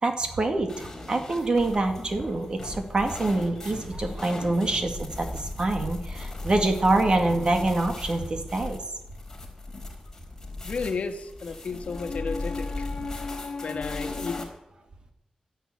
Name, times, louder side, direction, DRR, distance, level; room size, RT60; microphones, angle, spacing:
voice 1, 0.0-8.8, right 2 dB, 40° right, 5 dB, 2.2 m, -25 dB
sound 1, 0.7-14.4, left 2 dB, 20° left, 4.3 m, -38 dB
voice 2, 10.6-14.4, left 4 dB, 70° left, 6 dB, 1.6 m, -32 dB
13.0 x 11.0 x 8.6 m, 0.87 s
wide cardioid pair, 150°, 2 cm